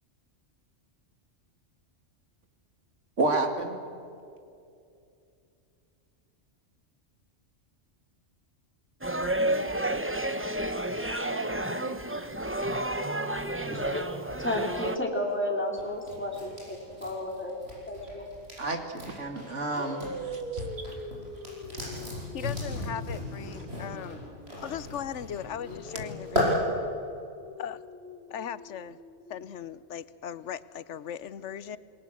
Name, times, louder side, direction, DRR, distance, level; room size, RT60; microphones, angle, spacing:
voice 1, 3.2-3.8 18.6-20.8 23.5-23.6, right 2 dB, 85° right, 2.6 m, -30 dB
sound 1, 9.0-15.0, right 1 dB, 10° right, 0.9 m, -30 dB
voice 2, 13.6-17.6 17.9-18.3, left 1 dB, 10° left, 3.1 m, -32 dB
sound 2, 15.8-20.1 20.4-26.5, left 1 dB, 60° right, 7.5 m, -36 dB
sound 3, 18.6-18.9 19.7-25.0 25.4-29.4, right 1 dB, 50° left, 2.0 m, -43 dB
voice 3, 22.3-24.2 24.6-26.5 27.6-27.8 28.3-29.0 29.3-31.8, left 9 dB, 75° left, 1.1 m, -38 dB
28.0 x 19.5 x 7.8 m
omnidirectional pair, 1.2 m